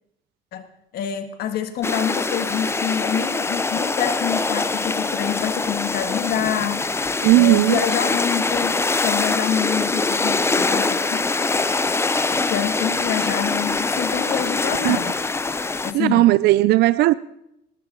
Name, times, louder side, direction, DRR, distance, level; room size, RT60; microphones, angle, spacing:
voice 1, 0.9-6.9 7.3-8.7 9.0-11.2 12.5-15.2 15.8-16.3, left 9 dB, 70° left, 1.7 m, -26 dB
sound 1, 1.8-15.9, left 3 dB, 15° left, 0.7 m, -23 dB
voice 2, 7.2-7.8 14.8-15.0 15.9-17.1, right 17 dB, 75° right, 0.4 m, -16 dB
19.5 x 14.0 x 3.8 m
cardioid pair, 110°, 17 cm